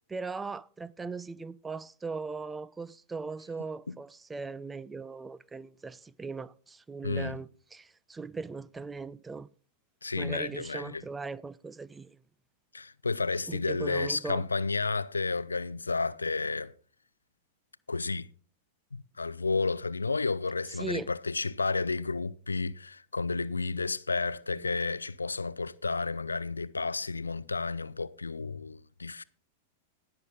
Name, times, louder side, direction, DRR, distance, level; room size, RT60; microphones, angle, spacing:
voice 1, 0.1-9.5 10.1-12.2 13.5-14.4 20.8-21.1, right 4 dB, 10° right, 0.4 m, -39 dB
voice 2, 7.0-7.4 10.0-11.0 12.7-16.7 17.9-18.3 18.9-29.2, left 4 dB, 80° left, 0.4 m, -31 dB
19.0 x 6.8 x 3.7 m
figure-of-eight pair, 95°, 0 cm